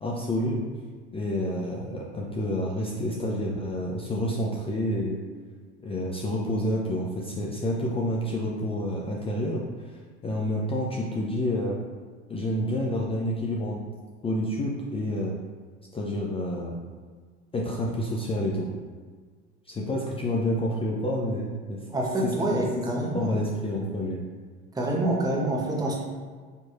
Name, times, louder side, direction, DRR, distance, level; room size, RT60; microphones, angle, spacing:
voice 1, 0.0-0.6 1.1-5.2 5.8-9.6 10.2-11.8 12.3-13.8 14.2-15.3 15.9-16.8 17.5-18.7 19.7-21.8 22.2-22.6 23.0-24.2, left 1 dB, 15° left, -2 dB, 0.4 m, -29 dB
voice 2, 21.9-23.4 24.7-25.9, right 1 dB, 10° right, -2 dB, 0.8 m, -27 dB
4.5 x 3.0 x 2.5 m, 1.5 s
hypercardioid pair, 80°, 34 cm